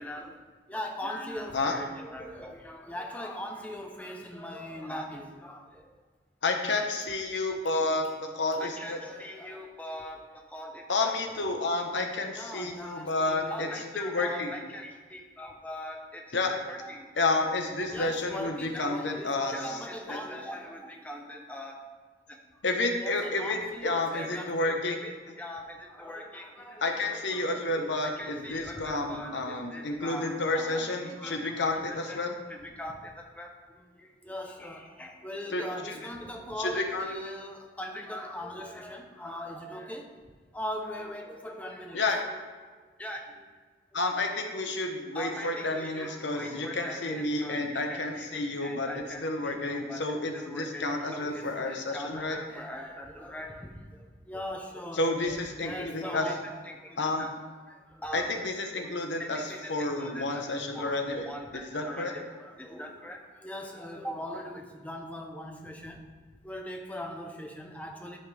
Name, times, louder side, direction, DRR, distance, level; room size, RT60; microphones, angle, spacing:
voice 1, 0.0-6.0 8.6-11.1 11.4-11.6 12.3-17.1 17.9-21.9 22.3-22.4 23.0-32.2 32.5-40.1 40.5-42.4 43.0-43.4 44.0-44.1 45.1-57.3 57.7-58.3 58.7-60.5 60.7-66.0 66.4-68.2, equal, 10° left, 2 dB, 0.7 m, -41 dB
voice 2, 6.4-9.0 10.9-13.7 14.0-14.6 16.3-16.5 17.2-19.8 20.1-20.2 22.6-25.0 26.8-32.3 35.5-36.0 36.6-37.1 41.9-42.2 43.9-48.9 49.2-52.4 54.9-56.3 57.0-57.3 58.1-59.4 59.7-61.2 61.5-62.1, left 2 dB, 80° left, 3 dB, 1.0 m, -30 dB
13.0 x 5.7 x 3.4 m, 1.4 s
head